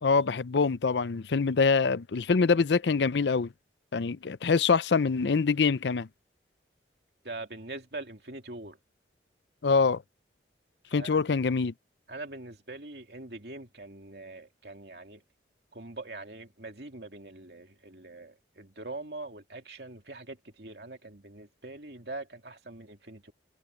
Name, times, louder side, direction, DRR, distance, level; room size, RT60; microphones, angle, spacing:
voice 1, 0.0-3.5 3.9-6.1 9.6-10.0 10.9-11.7, left 5 dB, 70° left, 0.5 m, -25 dB
voice 2, 7.2-8.8 10.9-11.2 12.1-15.2 15.7-23.3, right 2 dB, 65° right, 2.7 m, -43 dB
head